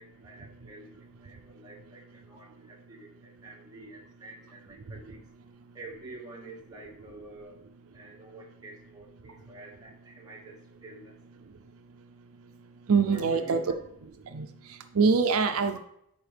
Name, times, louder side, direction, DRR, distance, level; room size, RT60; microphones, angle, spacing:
voice 1, 0.0-5.2 5.7-7.6 7.9-11.1 13.1-13.7 15.7-15.8, right 2 dB, 20° right, -3 dB, 1.7 m, -48 dB
voice 2, 12.9-13.6 14.3-15.8, right 5 dB, 75° right, 7 dB, 0.5 m, -24 dB
11.0 x 4.8 x 3.4 m, 0.73 s
head